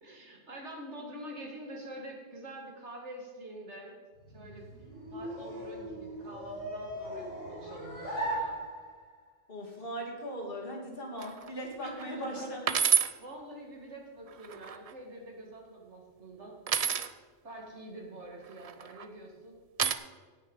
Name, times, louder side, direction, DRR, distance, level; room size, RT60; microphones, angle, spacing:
voice 1, 0.0-4.0 4.3-4.7 5.1-8.6 11.8-12.6 13.2-16.6 17.4-19.6, right 1 dB, 65° right, 0 dB, 2.4 m, -46 dB
sound 1, 4.2-9.2, right 1 dB, 85° left, 4.6 m, -39 dB
voice 2, 9.5-12.6, equal, 50° left, -1 dB, 2.4 m, -39 dB
sound 2, 11.2-11.5 12.0-12.1 12.7-13.1 14.3-14.9 16.7-17.1 18.6-19.0 19.8-19.9, right 7 dB, 50° right, 0.4 m, -28 dB
17.5 x 6.2 x 5.4 m, 1.5 s
omnidirectional pair, 1.2 m